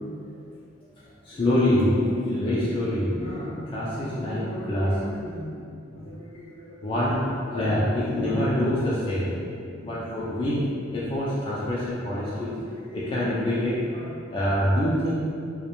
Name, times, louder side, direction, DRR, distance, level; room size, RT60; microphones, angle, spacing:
voice 1, 1.2-5.6 5.9-9.3 9.7-10.6 10.9-15.1, left 1 dB, 25° left, -8 dB, 0.3 m, -26 dB
2.4 x 2.1 x 2.9 m, 2.4 s
head